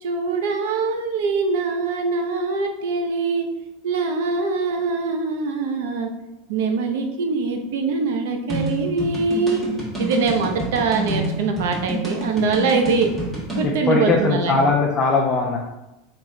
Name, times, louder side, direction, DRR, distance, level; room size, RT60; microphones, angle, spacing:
voice 1, 0.0-3.5 3.8-6.1 6.5-9.6 10.0-13.1 13.5-14.6, right 4 dB, 75° right, 5 dB, 0.7 m, -23 dB
sound 1, 8.5-13.7, right 1 dB, 15° right, 1.4 m, -27 dB
voice 2, 13.6-15.6, left 3 dB, 20° left, -1 dB, 0.5 m, -20 dB
4.4 x 3.1 x 3.7 m, 0.96 s
supercardioid pair, 150°, 0 cm